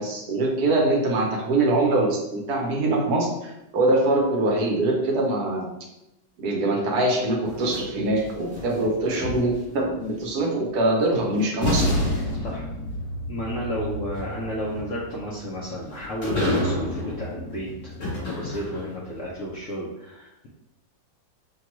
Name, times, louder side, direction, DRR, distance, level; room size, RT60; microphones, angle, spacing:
voice 1, 0.0-5.7 6.4-11.9, right 2 dB, 65° right, 0 dB, 1.1 m, -23 dB
sound 1, 7.4-9.8 11.0-11.1 11.6-19.1, left 1 dB, 50° left, 1.9 m, -29 dB
voice 2, 12.3-12.7 13.3-20.5, equal, 65° left, -5 dB, 0.8 m, -33 dB
5.9 x 2.3 x 3.0 m, 0.90 s
omnidirectional pair, 2.1 m